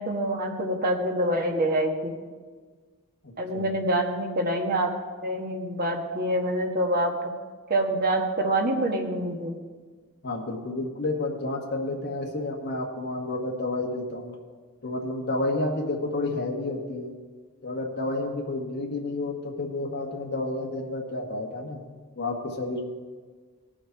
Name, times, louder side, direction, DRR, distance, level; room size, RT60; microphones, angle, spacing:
voice 1, 0.0-2.2 3.4-4.9 5.2-7.1 7.7-9.6, right 1 dB, 45° right, 2 dB, 1.5 m, -26 dB
voice 2, 3.2-3.8 10.2-14.4 14.8-17.1 17.6-21.8 22.2-22.8, left 2 dB, 50° left, -1 dB, 1.4 m, -30 dB
18.5 x 6.4 x 4.6 m, 1.5 s
head